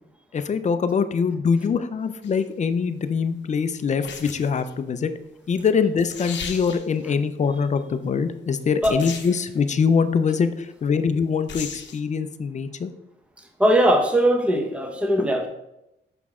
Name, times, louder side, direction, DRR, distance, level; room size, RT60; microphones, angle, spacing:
voice 1, 0.3-5.1 5.5-12.9, left 6 dB, 35° left, 11 dB, 0.5 m, -23 dB
sound 1, 2.2-2.5 4.0-4.7 5.7-5.8 6.0-7.0 8.8-9.5 11.5-12.0, left 6 dB, 60° left, 0.8 m, -36 dB
voice 2, 13.6-15.5, right 1 dB, 5° right, 3 dB, 0.8 m, -19 dB
6.2 x 5.8 x 3.6 m, 0.87 s
wide cardioid pair, 140°, 21 cm